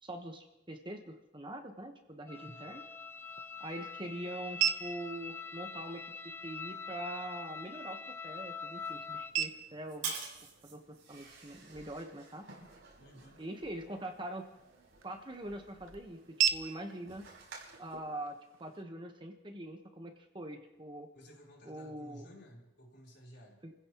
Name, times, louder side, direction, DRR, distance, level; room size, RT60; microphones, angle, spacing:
voice 1, 0.0-2.8 3.6-10.1 10.6-12.4 13.4-14.5 15.0-17.3 17.8-21.1 21.6-22.3 23.6-23.7, right 1 dB, 25° right, 4 dB, 1.3 m, -43 dB
voice 2, 2.3-2.7 13.0-13.4 21.1-23.6, equal, 55° left, -2 dB, 4.3 m, -55 dB
sound 1, 2.3-9.3, left 5 dB, 10° left, 0.5 m, -44 dB
sound 2, 2.8-18.8, right 9 dB, 90° right, 0.9 m, -41 dB
sound 3, 8.8-18.0, right 5 dB, 60° right, 6.0 m, -49 dB
29.5 x 15.5 x 3.1 m, 0.93 s
head